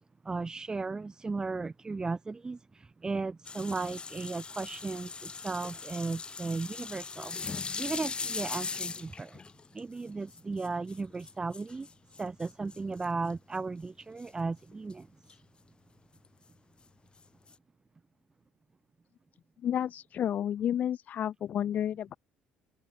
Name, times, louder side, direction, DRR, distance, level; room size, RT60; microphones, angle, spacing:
voice 1, 0.2-9.4 9.7-11.9 12.2-15.1, right 3 dB, 25° right, 4.2 m, -36 dB
sound 1, 3.4-13.3 14.2-14.3 14.7-14.9 15.3-15.4 16.2-16.3 17.2-17.5, left 5 dB, 30° left, 2.3 m, -40 dB
voice 2, 19.6-22.1, left 10 dB, 55° left, 1.6 m, -31 dB
supercardioid pair, 80°, 3 cm